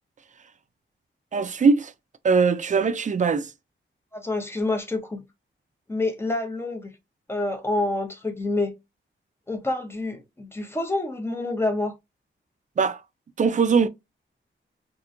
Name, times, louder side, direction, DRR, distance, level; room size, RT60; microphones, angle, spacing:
voice 1, 1.3-1.9 2.2-3.5 12.8-13.0 13.4-13.9, right 5 dB, 35° right, 0.4 m, -21 dB
voice 2, 4.1-5.2 5.9-6.9 7.3-8.7 9.5-11.9, left 2 dB, 10° left, 0.8 m, -27 dB
2.9 x 2.5 x 2.4 m
wide cardioid pair, 100°, 21 cm